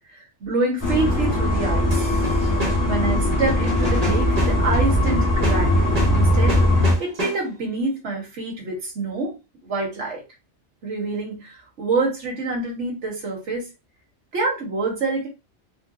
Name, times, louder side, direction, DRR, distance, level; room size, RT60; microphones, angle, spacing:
voice 1, 0.0-2.0 2.9-5.7 6.1-6.6 7.0-9.4 9.6-10.2 10.8-13.7 14.3-15.3, right 3 dB, 75° right, 1.4 m, -26 dB
sound 1, 0.8-6.9, left 1 dB, 15° left, 0.9 m, -20 dB
sound 2, 1.9-7.7, right 1 dB, 35° right, 0.9 m, -31 dB
3.8 x 2.2 x 2.4 m
omnidirectional pair, 1.2 m